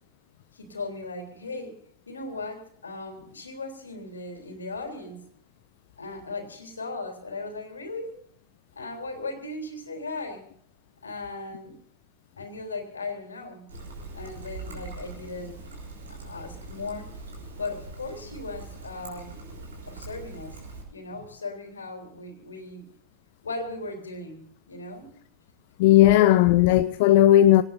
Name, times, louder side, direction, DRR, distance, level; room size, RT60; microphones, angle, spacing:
voice 1, 0.5-1.8 2.1-5.3 6.0-8.2 8.8-10.5 11.0-11.8 12.4-13.7 14.1-15.8 16.1-17.3 17.6-19.4 19.9-20.6 20.9-22.9 23.4-25.1, left 3 dB, 75° left, 3.5 m, -37 dB
Trickle dribble, 13.7-20.8, right 3 dB, 70° right, 5.5 m, -42 dB
voice 2, 25.8-27.6, left 13 dB, 50° left, 0.6 m, -16 dB
26.0 x 18.5 x 2.7 m
figure-of-eight pair, 90°, 0 cm